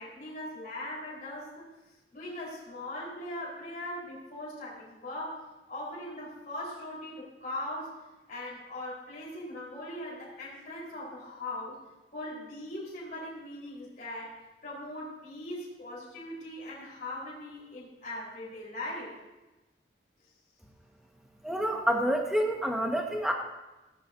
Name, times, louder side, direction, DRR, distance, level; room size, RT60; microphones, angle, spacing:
voice 1, 0.0-1.7 2.1-5.4 5.7-7.9 8.3-11.8 12.1-19.2, left 1 dB, 45° left, -7 dB, 4.0 m, -40 dB
voice 2, 21.4-23.3, equal, 5° right, 1 dB, 1.2 m, -28 dB
17.0 x 11.0 x 2.6 m, 1.1 s
head